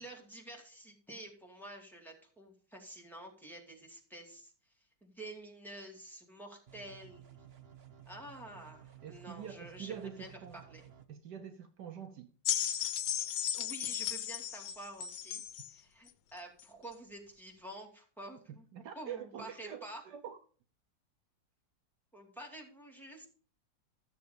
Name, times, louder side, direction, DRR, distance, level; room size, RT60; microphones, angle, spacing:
voice 1, 0.0-4.7 5.0-7.2 8.1-10.8 13.2-13.3 13.5-15.4 15.7-18.7 19.0-20.0 22.1-23.3, right 1 dB, ahead, 2.5 m, -49 dB
sound 1, 6.7-11.1, right 10 dB, 50° right, 0.8 m, -55 dB
voice 2, 9.0-10.6 11.1-12.3 18.5-20.4, right 8 dB, 70° right, 1.2 m, -45 dB
sound 2, 12.4-15.7 16.6-16.7, left 10 dB, 85° left, 1.5 m, -35 dB
13.5 x 6.8 x 5.1 m
omnidirectional pair, 2.0 m